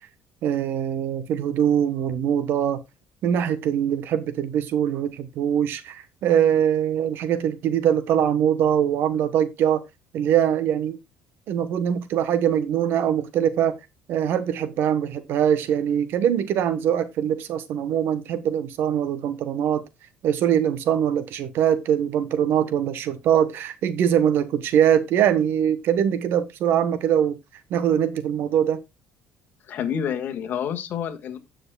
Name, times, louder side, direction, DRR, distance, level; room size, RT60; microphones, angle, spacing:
voice 1, 0.4-2.8 3.2-9.8 10.1-11.0 11.5-13.8 14.1-19.8 20.2-27.4 27.7-28.8, right 9 dB, 65° right, 1.1 m, -22 dB
voice 2, 29.7-31.4, left 8 dB, 50° left, 1.6 m, -28 dB
17.0 x 6.4 x 2.3 m
cardioid pair, 110°, 4 cm